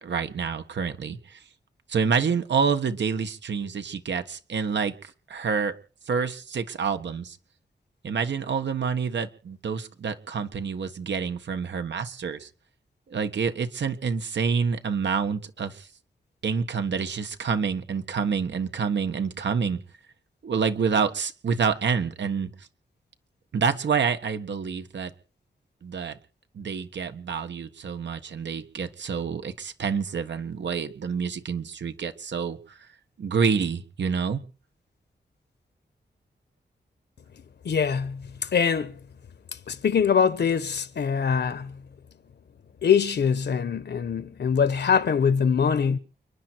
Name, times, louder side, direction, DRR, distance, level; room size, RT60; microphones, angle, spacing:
voice 1, 0.0-1.4 1.9-5.7 6.1-7.4 8.0-12.5 13.1-15.9 16.4-19.8 20.4-22.7 23.5-25.1 25.8-26.2 26.5-32.9 33.2-34.4, right 6 dB, 85° right, 1.6 m, -28 dB
voice 2, 37.6-39.0 39.7-41.8 42.8-46.0, left 7 dB, 70° left, 1.2 m, -23 dB
30.0 x 10.5 x 4.6 m
wide cardioid pair, 110°, 18 cm